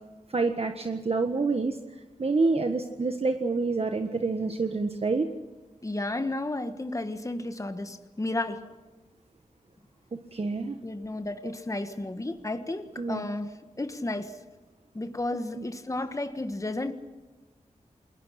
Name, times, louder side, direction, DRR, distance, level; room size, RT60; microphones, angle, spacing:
voice 1, 0.3-1.8 2.2-5.3 10.1-10.8 13.0-13.2 15.6-15.7, right 3 dB, 45° right, 6 dB, 1.5 m, -27 dB
voice 2, 5.8-8.7 10.8-14.4 14.9-16.9, left 2 dB, 25° left, 9 dB, 1.5 m, -32 dB
29.0 x 21.5 x 5.9 m, 1.2 s
wide cardioid pair, 100°, 14 cm